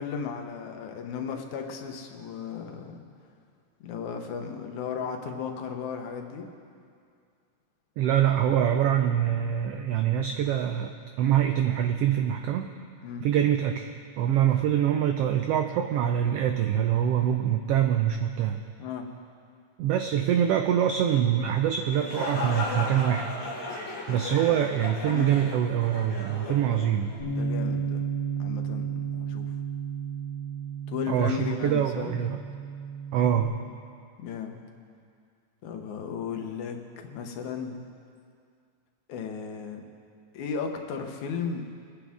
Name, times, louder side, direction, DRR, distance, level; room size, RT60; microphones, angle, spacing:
voice 1, 0.0-3.0 3.8-6.5 13.0-13.3 18.8-19.1 25.1-25.3 26.5-26.9 27.2-28.1 28.4-29.5 30.9-32.2 34.2-34.6 35.6-37.9 39.1-39.8 40.3-41.6, left 6 dB, 80° left, 4 dB, 2.4 m, -35 dB
voice 2, 8.0-12.7 13.2-18.6 19.8-23.3 24.1-27.1 31.1-32.4 33.1-33.5, right 10 dB, 85° right, 6 dB, 1.3 m, -25 dB
sound 1, 21.8-27.5, left 3 dB, 45° left, 3.0 m, -35 dB
Bass guitar, 27.2-33.4, right 6 dB, 15° left, 3.6 m, -33 dB
23.5 x 9.9 x 3.6 m, 2.3 s
omnidirectional pair, 3.4 m